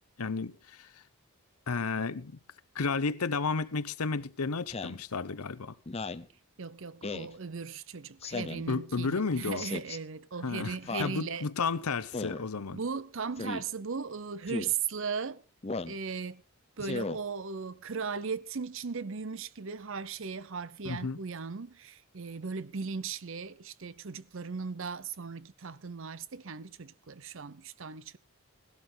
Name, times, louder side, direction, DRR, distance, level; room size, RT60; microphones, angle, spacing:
voice 1, 0.2-0.9 1.7-2.4 2.7-5.7 8.7-9.6 10.4-12.8 20.8-21.2, left 4 dB, 90° left, 0.8 m, -32 dB
Speech synthesizer, 4.7-5.0 5.9-6.3 7.0-7.3 8.2-8.7 9.6-10.0 10.9-11.2 12.1-12.4 13.4-13.6 14.5-14.7 15.6-16.0 16.8-17.2, left 3 dB, 25° left, 0.6 m, -36 dB
voice 2, 6.6-11.5 12.7-15.4 15.9-16.4 16.8-28.2, right 5 dB, 60° right, 0.7 m, -37 dB
17.5 x 12.5 x 3.9 m
head